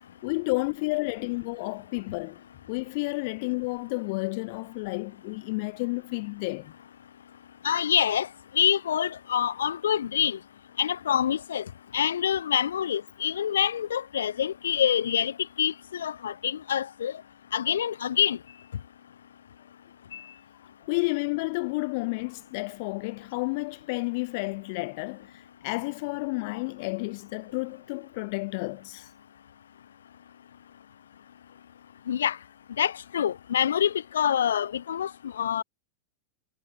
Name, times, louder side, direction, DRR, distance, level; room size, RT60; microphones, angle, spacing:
voice 1, 0.2-2.4 2.7-6.7 20.9-25.3 25.6-29.1, left 27 dB, 45° left, 5.1 m, -31 dB
voice 2, 7.6-8.3 8.5-10.4 10.8-11.6 11.9-15.3 15.6-17.1 17.5-18.4 20.1-20.2 32.1-32.4 32.8-35.1 35.4-35.6, left 9 dB, 65° left, 2.0 m, -26 dB
figure-of-eight pair, 90°, 0 cm